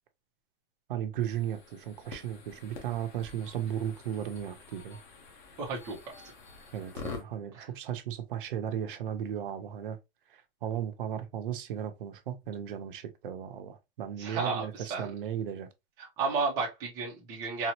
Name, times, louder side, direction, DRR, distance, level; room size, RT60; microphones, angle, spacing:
voice 1, 0.9-5.0 6.7-10.0 10.3-15.7, right 9 dB, 55° right, 0.7 m, -35 dB
sound 1, 1.2-7.2, left 4 dB, 45° left, 1.1 m, -47 dB
voice 2, 5.6-6.0 7.5-7.7 14.2-15.1 16.0-17.7, right 4 dB, 10° right, 0.5 m, -32 dB
4.1 x 2.0 x 2.8 m
supercardioid pair, 170°, 31 cm